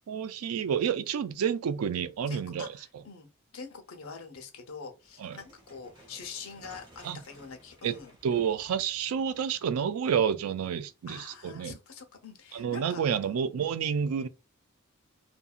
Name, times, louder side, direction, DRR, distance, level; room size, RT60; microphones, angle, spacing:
voice 1, 0.1-2.7 5.2-5.3 7.0-7.2 7.8-7.9 8.2-11.7 12.5-14.3, right 7 dB, 85° right, 0.3 m, -29 dB
voice 2, 2.3-3.3 3.5-8.1 11.1-13.4, left 5 dB, 75° left, 0.7 m, -45 dB
sound 1, 5.0-10.2, right 1 dB, 20° right, 1.1 m, -56 dB
2.8 x 2.6 x 2.4 m
head